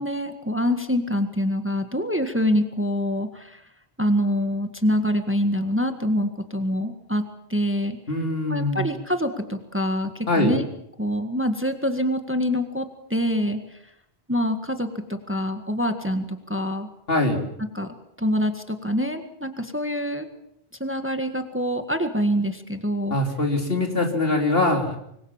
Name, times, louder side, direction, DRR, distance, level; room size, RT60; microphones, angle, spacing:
voice 1, 0.0-3.6 4.0-7.2 7.5-8.0 8.5-10.7 11.0-13.8 14.3-16.9 17.7-20.3 20.8-23.2, equal, 10° right, 7 dB, 1.7 m, -25 dB
voice 2, 8.1-8.8 10.3-10.6 17.1-17.4 23.1-25.0, left 2 dB, 60° left, 4 dB, 3.8 m, -22 dB
26.0 x 21.5 x 7.3 m, 0.77 s
omnidirectional pair, 1.1 m